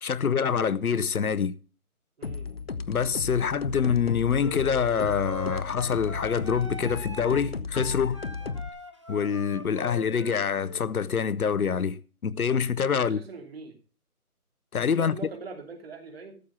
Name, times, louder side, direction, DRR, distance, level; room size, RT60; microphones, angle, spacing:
voice 1, 0.0-1.6 2.9-8.2 9.1-13.2 14.7-15.1, left 7 dB, 70° left, 0.8 m, -26 dB
sound 1, 2.2-8.7, left 5 dB, 40° left, 0.7 m, -35 dB
voice 2, 2.2-2.5 8.4-8.5 12.9-13.7 15.0-16.4, right 4 dB, 40° right, 3.1 m, -42 dB
sound 2, 4.4-10.9, left 2 dB, 20° right, 0.6 m, -41 dB
14.0 x 7.7 x 5.6 m
figure-of-eight pair, 165°, 45 cm